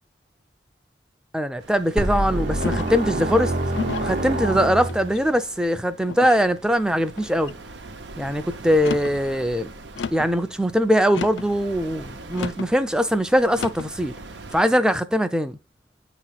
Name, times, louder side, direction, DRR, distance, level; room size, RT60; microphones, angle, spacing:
voice 1, 1.3-3.5 4.0-7.5 8.2-9.7 10.1-14.1 14.5-15.6, equal, 5° right, 0.5 m, -21 dB
sound 1, 1.6-14.6, right 3 dB, 85° right, 0.8 m, -42 dB
sound 2, 2.0-5.2, right 1 dB, 45° right, 0.8 m, -26 dB
sound 3, 2.6-3.1 3.7-4.2 4.8-5.4 6.1-6.5 7.1-7.6 8.7-9.2 9.9-10.3 11.1-11.5 12.3-12.7 13.5-13.9, left 5 dB, 90° left, 0.5 m, -32 dB
8.7 x 3.0 x 5.6 m
head